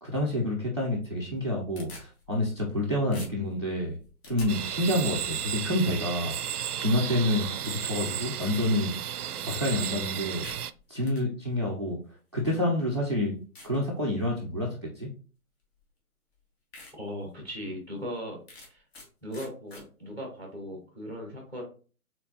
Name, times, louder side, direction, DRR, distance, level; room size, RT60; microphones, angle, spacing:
voice 1, 0.0-4.0 4.3-6.3 6.8-8.9 9.4-10.5 10.9-12.0 12.3-13.3 13.6-14.7 15.0-15.1, left 1 dB, 20° right, -4 dB, 0.4 m, -28 dB
sound 1, 1.3-2.8 3.1-4.5 9.5-9.9 10.2-11.2 12.1-12.2 12.8-12.9 13.5-13.8 14.3-14.6 15.8-15.9 16.3-16.4 16.7-16.9 17.4-17.5 18.5-19.1 19.3-19.8, left 2 dB, 45° left, 1.8 m, -46 dB
sound 2, 4.5-10.7, right 10 dB, 85° right, 0.5 m, -34 dB
voice 2, 16.9-18.4 18.7-18.8 19.2-21.6, equal, 5° left, 1 dB, 0.8 m, -38 dB
4.6 x 3.8 x 2.8 m, 0.38 s
hypercardioid pair, 150°, 44 cm